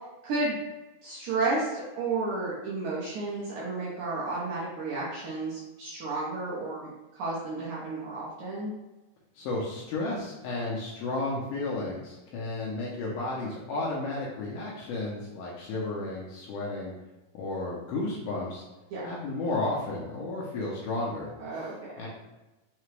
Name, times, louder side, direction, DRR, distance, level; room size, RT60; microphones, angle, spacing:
voice 1, 0.2-0.6 1.0-6.9 7.2-8.7 18.9-19.0 21.4-22.1, right 3 dB, 70° right, -6 dB, 1.9 m, -32 dB
voice 2, 9.4-16.9 17.3-18.7 19.0-21.6 22.0-22.1, left 2 dB, 75° left, -4 dB, 2.0 m, -33 dB
5.7 x 2.2 x 3.1 m, 1.0 s
omnidirectional pair, 4.1 m